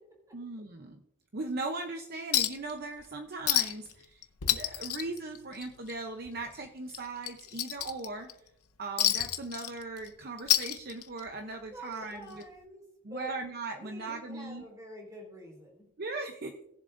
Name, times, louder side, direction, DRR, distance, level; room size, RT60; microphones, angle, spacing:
voice 1, 0.3-1.0 1.3-8.3 8.8-12.4 13.0-14.6 16.0-16.5, right 3 dB, 45° right, 4 dB, 0.7 m, -39 dB
Chink clink, 2.3-2.7 3.0-3.1 3.5-3.9 4.2-5.9 6.3-6.4 6.9-8.3 9.0-10.1 10.4-11.3 12.4-12.5, left 13 dB, 85° left, 0.8 m, -29 dB
voice 2, 11.7-12.8 13.1-13.3 13.7-15.9, equal, 15° right, -1 dB, 3.4 m, -47 dB
19.0 x 7.2 x 2.6 m, 0.81 s
head